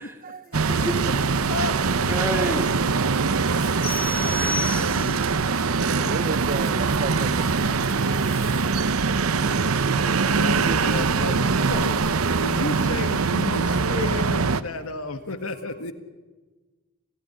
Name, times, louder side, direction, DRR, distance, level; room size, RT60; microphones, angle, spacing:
sound 1, 0.5-14.6, right 4 dB, 80° right, 0.8 m, -23 dB
Clock, 0.6-12.7, left 1 dB, 50° left, 3.6 m, -43 dB
voice 1, 0.7-2.9, right 1 dB, 10° right, 2.7 m, -34 dB
voice 2, 1.5-2.1 3.4-6.8 8.4-8.5 9.5-9.9 10.4-15.9, left 3 dB, 80° left, 1.8 m, -33 dB
sound 2, 3.8-5.4, left 2 dB, 30° left, 4.5 m, -31 dB
voice 3, 5.7-8.0 8.8-9.4 10.7-11.0, right 4 dB, 40° right, 0.7 m, -35 dB
28.0 x 16.0 x 10.0 m
head